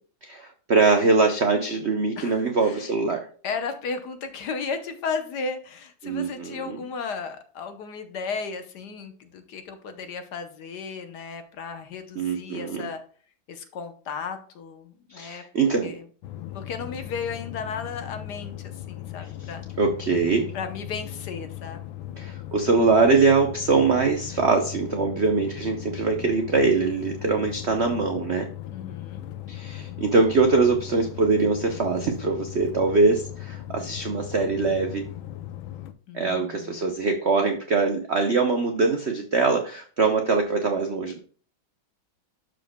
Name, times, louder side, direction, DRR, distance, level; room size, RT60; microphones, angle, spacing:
voice 1, 0.2-3.3 6.0-6.8 12.2-12.8 15.1-15.9 19.8-20.5 22.2-28.5 29.5-35.0 36.1-41.2, right 4 dB, 75° right, 5 dB, 0.6 m, -23 dB
voice 2, 2.2-2.9 3.4-13.0 13.5-15.4 15.8-16.0 16.5-19.6 20.5-21.8 28.7-29.2 36.1-36.8, left 5 dB, 60° left, 7 dB, 1.3 m, -34 dB
sound 1, 16.2-35.9, left 13 dB, 80° left, 1.4 m, -38 dB
12.0 x 5.1 x 2.2 m, 0.42 s
omnidirectional pair, 2.2 m